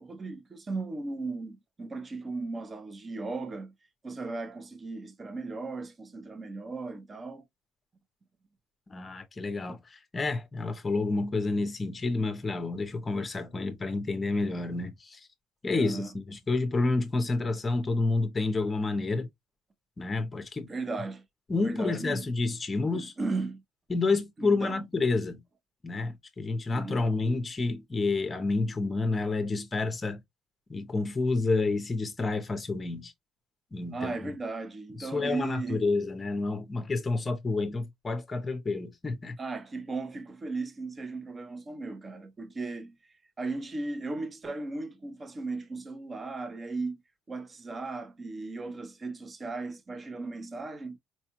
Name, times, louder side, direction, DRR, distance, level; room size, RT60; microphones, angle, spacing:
voice 1, 0.0-3.7 4.0-7.5 15.8-16.1 20.7-21.2 21.6-22.3 22.9-23.6 24.4-24.8 26.7-27.0 33.9-35.8 39.4-43.0 43.4-47.0 47.3-51.0, right 3 dB, 20° right, 0.5 m, -36 dB
voice 2, 8.9-15.3 15.6-19.3 20.0-20.7 21.5-23.1 23.9-25.4 25.8-30.2 30.7-33.1 33.7-34.3 34.9-39.4, left 3 dB, 20° left, 0.6 m, -29 dB
4.3 x 2.2 x 2.9 m
cardioid pair, 160°, 0 cm